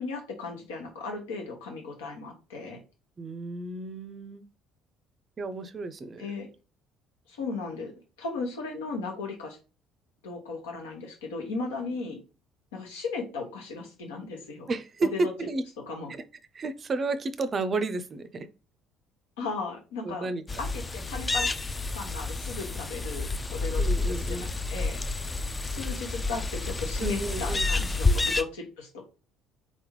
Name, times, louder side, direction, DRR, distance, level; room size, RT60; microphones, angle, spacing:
voice 1, 0.0-2.8 6.2-6.5 7.3-7.9 8.2-9.6 10.2-12.2 12.7-14.7 15.1-15.3 15.9-16.1 19.4-20.3 20.6-21.5 21.9-23.8 24.1-25.0 25.7-29.0, left 4 dB, 75° left, 1.4 m, -36 dB
voice 2, 3.2-4.4 5.4-6.3 14.7-15.1 15.4-15.6 16.1-16.2 16.5-18.5 20.0-20.4 23.8-24.5 27.0-27.6 28.0-28.2, right 3 dB, 35° right, 0.5 m, -32 dB
sound 1, 20.5-28.4, left 3 dB, 20° left, 0.4 m, -29 dB
3.9 x 3.5 x 3.2 m
figure-of-eight pair, 55°, 0 cm